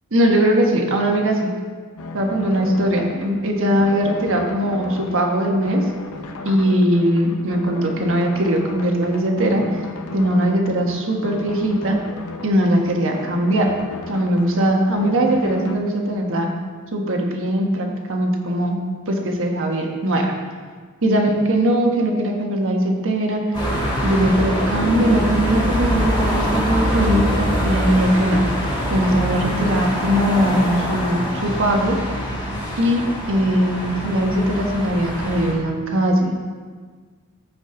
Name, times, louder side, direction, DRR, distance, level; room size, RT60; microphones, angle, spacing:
voice 1, 0.1-1.5 2.1-5.8 6.4-9.8 10.1-12.0 12.4-13.7 14.1-16.5 16.9-18.8 19.1-20.3 21.0-23.4 24.0-28.4 28.9-31.9 32.8-33.0 33.3-36.3, right 1 dB, 65° right, 1 dB, 1.3 m, -20 dB
sound 1, 2.0-15.7, left 2 dB, 75° left, 0.7 m, -35 dB
sound 2, 23.5-35.5, equal, 20° left, 2.4 m, -24 dB
14.5 x 5.1 x 3.9 m, 1.5 s
head